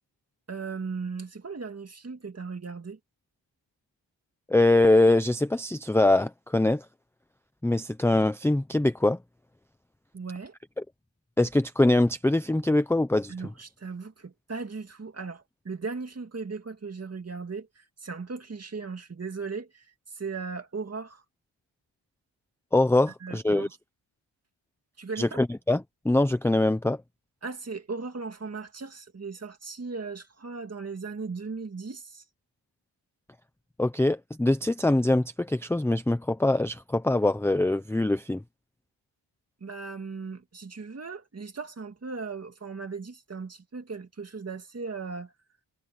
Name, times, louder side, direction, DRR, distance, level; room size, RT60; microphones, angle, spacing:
voice 1, 0.5-3.0 10.1-10.5 13.3-21.2 23.2-23.7 25.0-25.4 27.4-32.2 39.6-45.3, right 4 dB, 30° right, 2.2 m, -37 dB
voice 2, 4.5-6.9 7.6-9.2 11.4-13.3 22.7-23.7 25.2-27.0 33.8-38.4, left 2 dB, 5° left, 0.6 m, -23 dB
wide cardioid pair, 180°, 49 cm